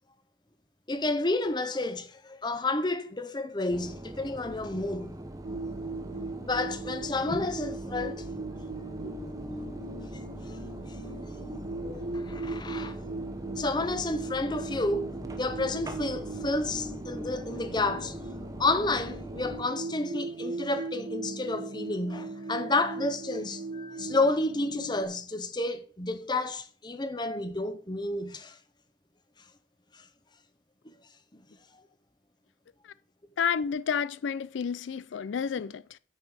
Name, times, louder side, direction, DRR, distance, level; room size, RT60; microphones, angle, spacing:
voice 1, 0.9-5.2 6.4-8.2 8.9-9.3 10.5-10.6 10.9-11.0 11.8-13.0 13.6-18.2 18.6-28.6 29.9-30.1 30.8-30.9 31.3-31.4, left 2 dB, 25° left, 0.8 m, -31 dB
sound 1, 3.7-19.6, right 1 dB, 20° right, 0.9 m, -41 dB
sound 2, 5.4-25.1, right 2 dB, 75° right, 1.7 m, -39 dB
voice 2, 33.4-36.0, left 7 dB, 85° left, 0.4 m, -30 dB
9.3 x 5.3 x 6.3 m
head